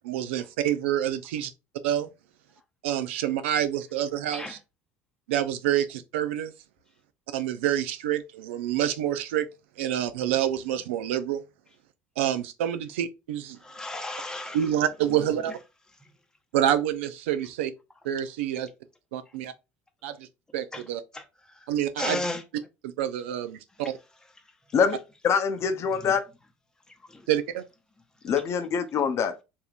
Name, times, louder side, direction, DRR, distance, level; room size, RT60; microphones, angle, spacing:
voice 1, 0.0-1.5 1.8-2.1 2.8-4.6 5.3-6.5 7.3-9.5 9.8-11.4 12.2-13.6 14.5-15.6 16.5-17.7 18.0-18.7 19.1-19.5 20.0-20.3 20.5-21.0 21.7-22.2 23.0-23.9 27.3-27.6, right 11 dB, 90° right, 0.4 m, -27 dB
voice 2, 13.6-14.7 15.1-15.2 16.0-16.1 20.7-20.8 21.1-21.7 22.0-22.4 25.9-26.2 26.9-27.3, left 2 dB, 10° left, 0.7 m, -35 dB
voice 3, 25.2-26.2 28.2-29.4, left 6 dB, 45° left, 0.6 m, -24 dB
3.4 x 2.7 x 2.3 m
supercardioid pair, 85°, 6 cm